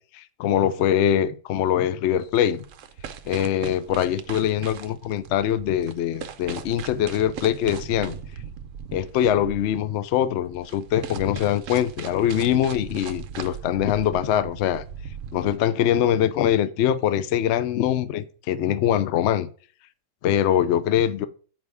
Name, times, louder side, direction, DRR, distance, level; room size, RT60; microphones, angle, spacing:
voice 1, 0.1-2.6 3.3-8.2 8.9-14.8 15.3-19.5 20.2-21.3, left 10 dB, 85° left, 0.6 m, -23 dB
sound 1, 2.1-15.6, right 7 dB, 65° right, 0.8 m, -39 dB
9.5 x 5.4 x 3.5 m
omnidirectional pair, 1.8 m